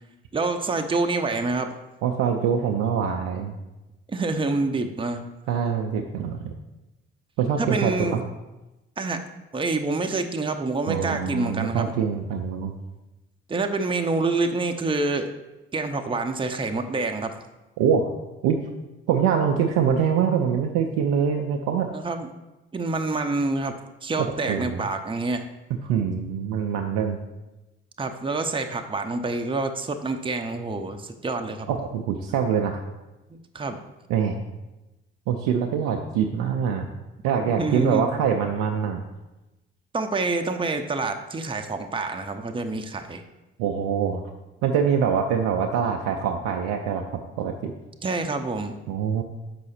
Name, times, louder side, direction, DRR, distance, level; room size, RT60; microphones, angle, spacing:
voice 1, 0.3-1.7 4.1-5.3 7.6-8.2 9.0-9.2 9.5-11.9 13.5-15.3 15.7-17.3 21.9-22.3 22.7-25.4 28.0-31.7 33.3-33.8 37.6-38.1 39.9-43.2 48.0-48.8, right 3 dB, 20° right, 6 dB, 0.7 m, -27 dB
voice 2, 2.0-3.5 5.5-6.5 7.4-8.2 10.9-12.7 17.8-18.1 18.4-18.7 19.1-21.9 24.2-24.8 25.8-27.2 31.7-32.8 34.1-34.4 35.3-36.9 37.2-39.0 43.6-44.2 44.6-47.7 48.9-49.2, right 7 dB, 75° right, 3 dB, 0.5 m, -24 dB
6.2 x 5.0 x 4.3 m, 1.0 s
hypercardioid pair, 45°, 29 cm